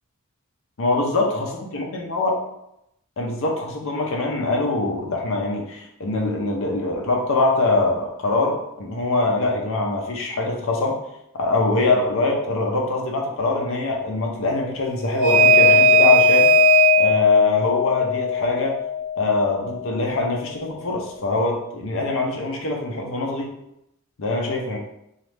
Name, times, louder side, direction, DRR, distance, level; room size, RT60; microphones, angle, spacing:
voice 1, 0.8-2.4 3.2-11.0 11.3-16.5 17.0-18.8 19.2-23.5 24.2-24.8, left 2 dB, 60° left, 0 dB, 0.5 m, -23 dB
sound 1, 15.1-20.0, equal, 55° right, 0.5 m, -17 dB
3.0 x 2.4 x 3.2 m, 0.82 s
head